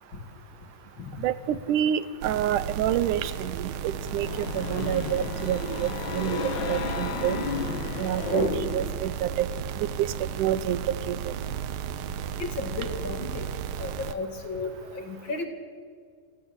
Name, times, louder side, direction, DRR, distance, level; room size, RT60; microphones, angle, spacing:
voice 1, 1.2-7.4 8.0-9.5 9.8-11.3, right 10 dB, 75° right, 14 dB, 2.2 m, -28 dB
sound 1, 2.2-14.1, right 9 dB, 90° right, 2.8 m, -34 dB
sound 2, 3.8-9.1, left 6 dB, 90° left, 1.0 m, -33 dB
voice 2, 12.4-13.5 13.8-15.5, left 3 dB, 35° left, 5 dB, 2.7 m, -34 dB
28.0 x 22.0 x 8.1 m, 2.1 s
omnidirectional pair, 4.0 m